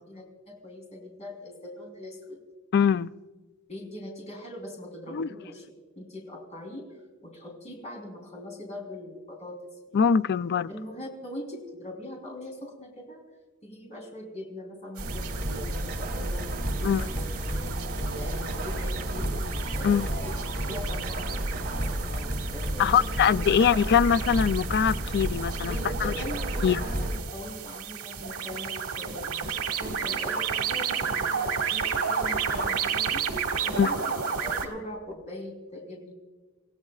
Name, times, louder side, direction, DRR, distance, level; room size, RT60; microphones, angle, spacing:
voice 1, 0.1-2.4 3.7-5.7 6.0-6.9 7.2-10.0 10.7-13.2 13.6-16.5 16.8-17.8 18.1-19.4 19.7-20.3 20.7-23.1 25.7-33.3 33.6-36.1, left 1 dB, 30° left, 0 dB, 3.6 m, -41 dB
voice 2, 2.7-3.1 5.1-5.3 9.9-10.7 16.8-17.0 19.8-20.1 22.8-25.8 26.0-26.1 26.6-26.8 33.8-33.9, left 7 dB, 50° left, 15 dB, 0.3 m, -22 dB
sound 1, 15.0-27.2, right 1 dB, 45° right, 2.7 m, -31 dB
sound 2, 15.0-34.7, right 6 dB, 85° right, 1.7 m, -33 dB
sound 3, 16.6-22.0, right 3 dB, 70° right, 4.2 m, -46 dB
28.5 x 16.0 x 2.4 m, 1.3 s
head